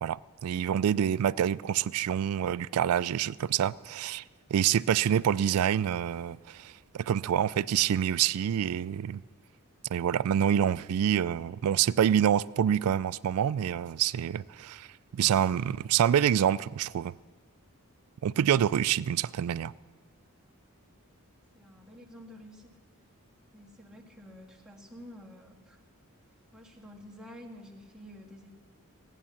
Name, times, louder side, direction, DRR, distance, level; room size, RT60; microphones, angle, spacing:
voice 1, 0.0-4.2 4.5-9.2 9.9-14.9 15.1-17.1 18.2-19.7, right 9 dB, 75° right, 0.3 m, -27 dB
voice 2, 21.5-22.8 23.5-25.8 26.5-28.5, left 1 dB, 5° right, 1.7 m, -49 dB
17.0 x 9.9 x 7.1 m
head